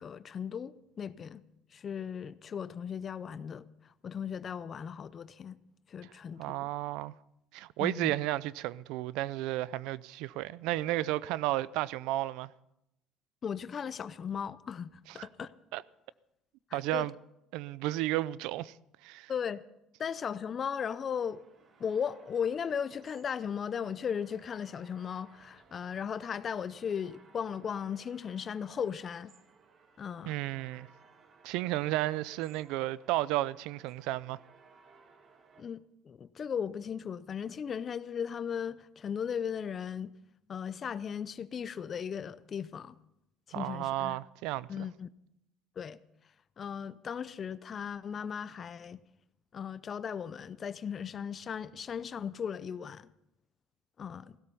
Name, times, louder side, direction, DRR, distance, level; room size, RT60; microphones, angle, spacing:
voice 1, 0.0-1.4 1.7-3.7 4.0-5.6 5.9-6.7 7.8-8.1 13.4-15.5 16.7-17.1 19.3-19.6 20.0-21.4 21.8-29.3 30.0-30.3 35.6-40.1 40.5-43.0 43.5-44.2 44.7-45.1 45.8-46.0 46.6-49.0 49.5-53.1 54.0-54.4, left 7 dB, 35° left, 0.6 m, -37 dB
voice 2, 6.4-7.1 7.5-12.5 15.1-15.3 15.7-15.8 16.7-17.1 17.5-18.7 19.0-19.3 30.2-30.9 31.4-34.4 43.5-44.7, right 16 dB, 80° right, 0.4 m, -33 dB
sound 1, 21.1-35.6, right 5 dB, 40° right, 1.5 m, -61 dB
16.0 x 12.5 x 5.5 m
cardioid pair, 120°, 0 cm